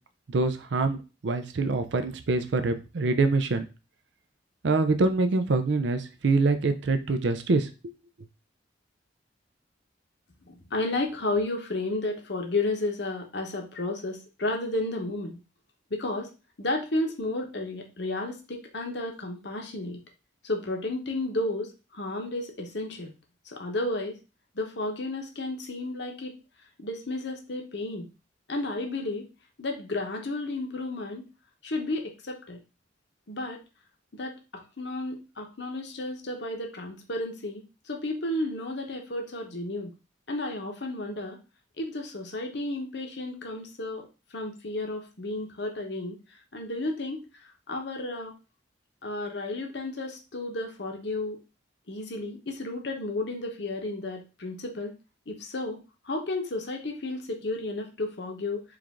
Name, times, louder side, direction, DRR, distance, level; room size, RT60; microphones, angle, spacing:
voice 1, 0.3-1.0 1.2-3.7 4.6-7.9, right 3 dB, 65° right, 8 dB, 0.5 m, -25 dB
voice 2, 10.5-15.4 15.9-16.3 16.6-20.0 20.4-23.1 23.5-24.1 24.5-26.3 26.8-28.1 28.5-29.3 29.6-31.2 31.6-32.6 33.3-33.6 34.2-34.3 34.8-39.9 40.3-41.4 41.8-44.1 44.3-46.2 46.5-47.2 47.7-48.3 49.0-51.4 51.9-54.9 55.3-55.8 56.0-58.6, left 2 dB, 60° left, 2 dB, 0.9 m, -32 dB
4.7 x 2.5 x 3.6 m, 0.30 s
head